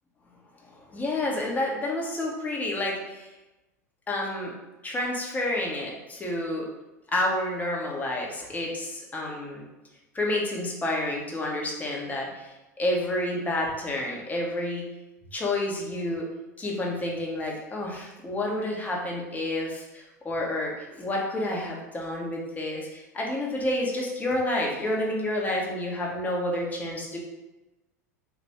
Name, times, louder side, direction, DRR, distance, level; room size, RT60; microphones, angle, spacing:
voice 1, 0.9-3.3 4.1-4.5 4.8-6.7 7.1-9.6 10.1-12.5 12.8-14.8 15.3-16.3 16.6-27.2, left 1 dB, 15° left, -2 dB, 1.0 m, -29 dB
4.1 x 2.5 x 3.5 m, 1.0 s
figure-of-eight pair, 85°, 9 cm